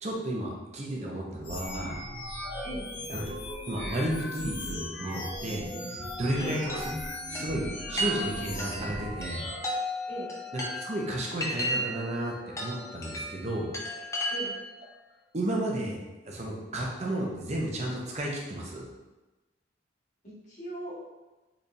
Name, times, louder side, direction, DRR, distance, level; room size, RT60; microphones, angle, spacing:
voice 1, 0.0-1.9 3.1-3.2 3.7-6.9 7.3-9.4 10.5-13.7 15.3-16.0 16.3-18.9, right 1 dB, 35° right, -1 dB, 0.6 m, -33 dB
sound 1, 1.4-9.6, left 1 dB, 60° left, 1.0 m, -37 dB
Chime, 6.7-14.8, equal, 15° left, 0.4 m, -35 dB
voice 2, 20.2-21.0, right 1 dB, 40° left, -8 dB, 1.5 m, -39 dB
4.0 x 3.3 x 2.6 m, 1.1 s
head